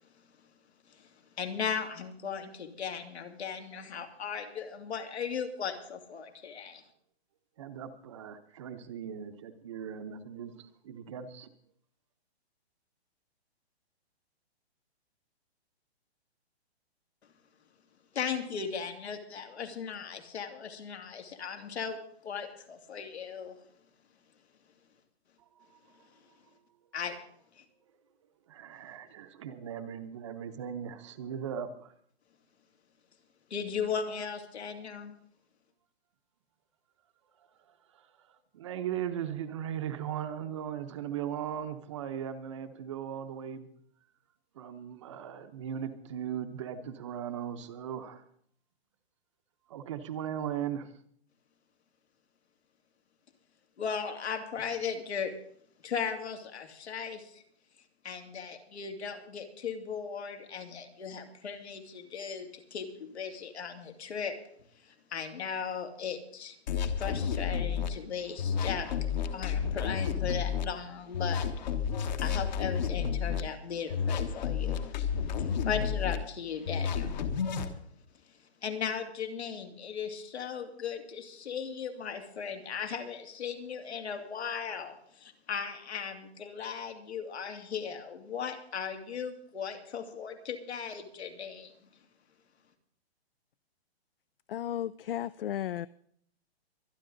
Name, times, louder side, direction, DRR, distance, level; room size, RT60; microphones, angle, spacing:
voice 1, 1.4-6.8 18.1-23.6 26.9-27.1 27.6-27.7 33.5-35.1 53.8-55.3 55.8-57.4 58.0-64.4 64.8-66.6 67.0-68.9 69.3-71.5 72.2-77.1 78.6-91.7, left 6 dB, 75° left, 4 dB, 2.8 m, -37 dB
voice 2, 7.6-11.5 25.6-25.8 28.5-31.9 37.9-43.7 44.5-48.2 49.7-50.9, right 9 dB, 30° right, 9 dB, 0.8 m, -38 dB
sound 1, 66.7-67.9 68.4-70.6 71.1-73.4 73.9-76.2 76.7-77.7, left 7 dB, 40° left, 1.3 m, -31 dB
voice 3, 94.5-95.9, left 11 dB, 60° left, 18 dB, 0.4 m, -34 dB
24.5 x 10.0 x 3.9 m, 0.64 s
hypercardioid pair, 165°, 33 cm